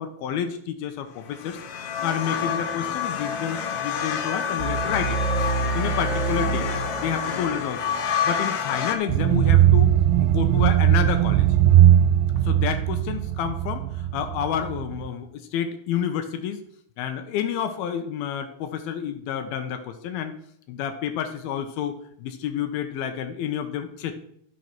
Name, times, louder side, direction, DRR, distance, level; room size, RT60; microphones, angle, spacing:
voice 1, 0.0-1.6 2.0-6.7 7.0-7.8 8.2-9.9 10.2-11.5 12.4-16.6 17.0-20.3 20.7-24.2, left 8 dB, 80° left, 7 dB, 2.7 m, -29 dB
sound 1, 1.3-8.9, left 7 dB, 65° left, 2.0 m, -28 dB
sound 2, 4.6-7.9, right 3 dB, 25° left, 0.9 m, -27 dB
sound 3, 9.1-15.1, right 12 dB, 85° right, 2.5 m, -19 dB
12.5 x 6.3 x 5.9 m, 0.68 s
omnidirectional pair, 4.4 m